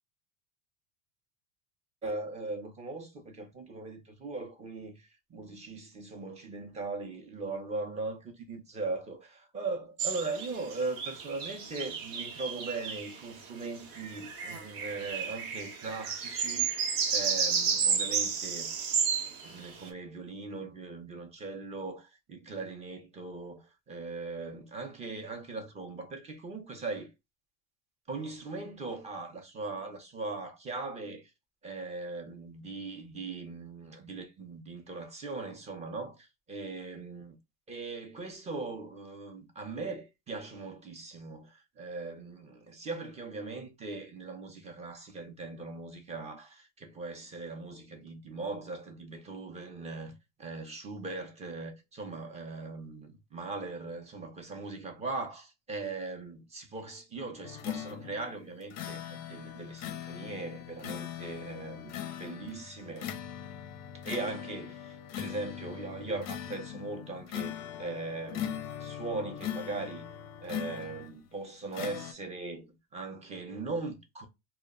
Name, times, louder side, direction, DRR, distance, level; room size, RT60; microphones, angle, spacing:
voice 1, 2.0-16.7 17.1-18.7 19.4-27.1 28.1-31.3 31.6-37.4 37.7-63.1 64.0-70.1 70.4-74.3, right 3 dB, 15° right, 0.4 m, -39 dB
sound 1, 10.0-13.2 13.9-19.9, right 6 dB, 85° right, 0.9 m, -32 dB
sound 2, 57.4-71.3 71.7-72.1, left 10 dB, 40° left, 0.4 m, -40 dB
2.0 x 2.0 x 3.4 m
supercardioid pair, 125°, 45 cm